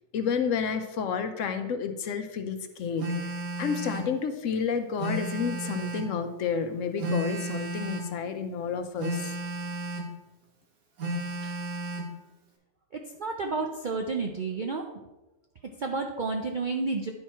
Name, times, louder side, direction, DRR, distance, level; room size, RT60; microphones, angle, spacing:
voice 1, 0.1-9.4, left 6 dB, 65° left, 8 dB, 1.0 m, -30 dB
Telephone, 3.0-4.1 5.0-6.1 7.0-8.1 9.0-10.1 11.0-12.1, right 1 dB, 80° right, 1.7 m, -33 dB
voice 2, 12.9-14.9 15.8-17.1, right 4 dB, 60° right, 3 dB, 0.5 m, -31 dB
10.0 x 4.6 x 4.4 m, 1.0 s
omnidirectional pair, 1.5 m